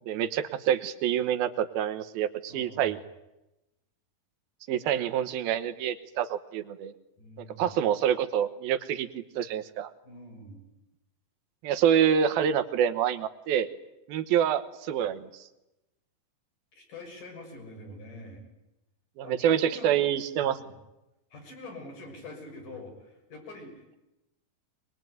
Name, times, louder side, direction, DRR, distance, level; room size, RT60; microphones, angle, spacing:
voice 1, 0.1-3.0 4.7-6.9 7.6-9.9 11.6-13.7 14.1-15.5 19.2-20.6, right 9 dB, 85° right, 11 dB, 3.1 m, -27 dB
voice 2, 2.5-3.0 7.2-7.7 10.0-10.7 16.7-18.5 19.2-20.0 20.4-20.7 21.3-23.8, left 2 dB, 60° left, 3 dB, 8.0 m, -45 dB
23.0 x 22.0 x 9.4 m, 0.95 s
omnidirectional pair, 4.2 m